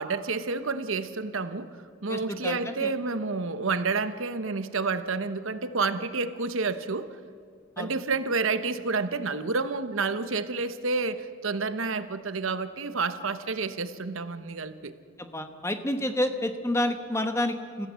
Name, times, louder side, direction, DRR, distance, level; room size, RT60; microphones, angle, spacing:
voice 1, 0.0-1.7 2.0-7.2 7.8-14.9, right 4 dB, 75° right, 11 dB, 1.0 m, -29 dB
voice 2, 2.1-2.9 7.8-7.9 15.2-17.9, left 1 dB, 15° left, 7 dB, 1.2 m, -29 dB
28.5 x 15.5 x 7.5 m, 2.2 s
head